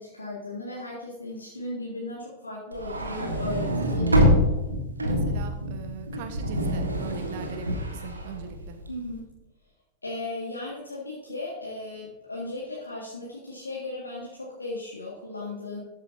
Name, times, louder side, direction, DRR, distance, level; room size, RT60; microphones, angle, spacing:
voice 1, 0.0-4.3 8.9-9.2 10.0-15.8, left 2 dB, 80° left, -5 dB, 1.9 m, -36 dB
sound 1, 2.7-9.0, equal, 80° right, 1.7 m, -26 dB
voice 2, 5.0-8.8, right 6 dB, 50° right, 7 dB, 1.1 m, -40 dB
13.0 x 8.8 x 2.7 m, 0.98 s
figure-of-eight pair, 90°, 0 cm